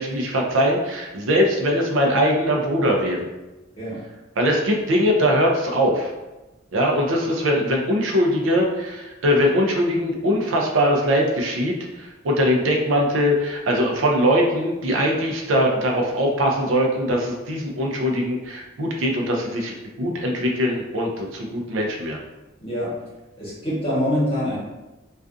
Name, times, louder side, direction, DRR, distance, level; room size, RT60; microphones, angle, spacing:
voice 1, 0.0-3.2 4.4-6.1 6.7-22.2, equal, 80° right, 0 dB, 0.5 m, -21 dB
voice 2, 22.6-22.9 23.4-24.6, equal, 30° left, -8 dB, 1.1 m, -24 dB
2.4 x 2.3 x 2.5 m, 1.0 s
head